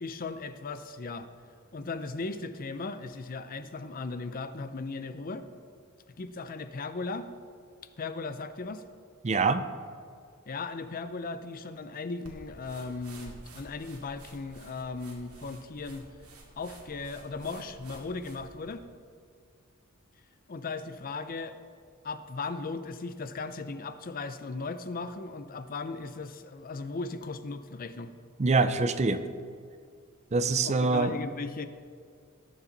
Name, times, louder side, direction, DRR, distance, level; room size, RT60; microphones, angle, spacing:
voice 1, 0.0-1.3 1.7-5.5 6.2-7.3 8.0-8.8 10.5-16.1 16.6-18.8 20.5-21.5 22.0-28.1 30.6-31.6, left 3 dB, 40° left, 11 dB, 0.6 m, -37 dB
voice 2, 9.2-9.6 28.4-29.2 30.3-31.2, right 3 dB, 30° right, 11 dB, 0.5 m, -24 dB
sound 1, 12.2-18.7, right 2 dB, 90° right, 2.3 m, -51 dB
18.5 x 7.2 x 4.0 m, 2.2 s
head